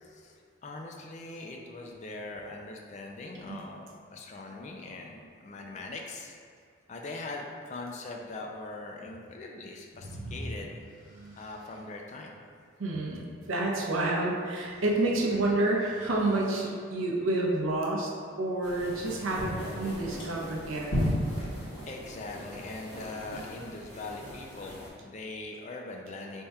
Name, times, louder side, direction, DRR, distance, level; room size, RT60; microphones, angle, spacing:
voice 1, 0.0-6.4 6.9-10.8 11.4-12.4 15.3-15.4 21.9-26.4, left 2 dB, 35° left, 1 dB, 0.3 m, -41 dB
sound 1, 9.9-11.8 14.6-16.6, equal, 15° right, 0.8 m, -45 dB
voice 2, 12.8-18.1 18.4-20.9, right 2 dB, 80° right, -2 dB, 0.6 m, -29 dB
sound 2, 18.6-24.9, left 1 dB, 55° left, 1.4 m, -36 dB
3.5 x 2.3 x 4.1 m, 2.2 s
head